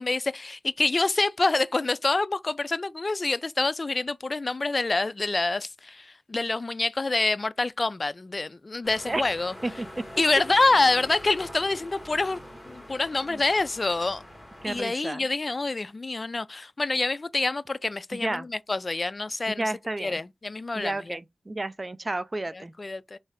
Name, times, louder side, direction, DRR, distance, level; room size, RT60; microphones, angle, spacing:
voice 1, 0.0-9.5 10.2-12.4 12.7-14.2 14.6-19.7 20.0-21.2 22.5-23.2, left 3 dB, 45° left, 0.3 m, -26 dB
sound 1, 8.8-14.8, left 1 dB, 10° left, 1.9 m, -44 dB
voice 2, 14.6-15.3 18.1-18.5 19.5-20.2 20.7-22.7, right 2 dB, 35° right, 0.5 m, -31 dB
3.2 x 2.6 x 3.6 m
cardioid pair, 45°, 0 cm